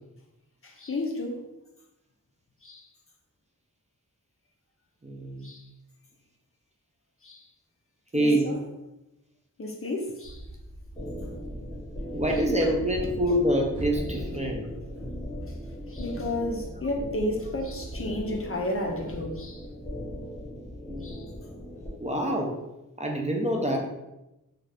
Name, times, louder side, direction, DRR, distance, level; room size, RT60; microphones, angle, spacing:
voice 1, 0.6-1.5 2.6-2.9 5.4-5.6 7.2-7.5 8.1-8.6 9.6-10.4 12.6-12.7 15.9-19.7 21.0-21.3, left 1 dB, 40° left, 0.5 m, -32 dB
voice 2, 5.0-5.5 8.1-8.5 12.1-14.7 22.0-22.6 23.0-23.8, right 1 dB, 20° right, 0.5 m, -26 dB
sound 1, 10.2-18.4, right 1 dB, 60° right, 0.7 m, -43 dB
sound 2, 10.9-21.9, left 1 dB, 15° left, 0.9 m, -38 dB
2.7 x 2.4 x 3.3 m
wide cardioid pair, 50°, 34 cm